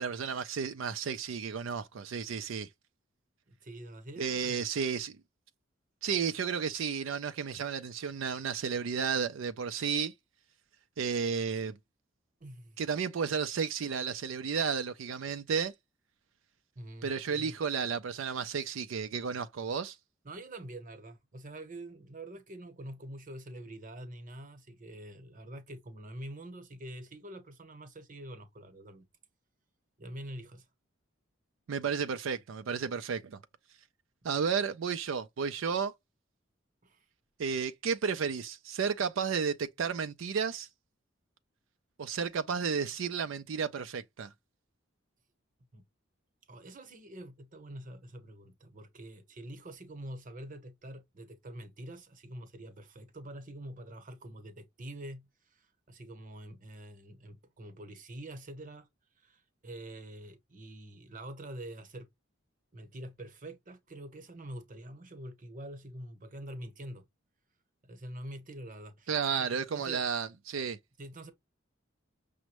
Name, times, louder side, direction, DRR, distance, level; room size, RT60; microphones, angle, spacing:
voice 1, 0.0-2.7 4.2-5.2 6.0-10.1 11.0-11.8 12.8-15.7 17.0-20.0 31.7-33.4 34.2-35.9 37.4-40.7 42.0-44.3 69.1-70.8, right 6 dB, 85° right, 0.4 m, -32 dB
voice 2, 3.5-4.6 12.4-12.8 16.7-17.5 20.2-29.1 30.0-30.7 36.8-37.0 45.7-45.8 46.5-58.9 59.2-62.1 62.7-67.0 67.8-70.1 71.0-71.3, right 1 dB, 45° right, 1.0 m, -46 dB
6.1 x 2.1 x 2.9 m
head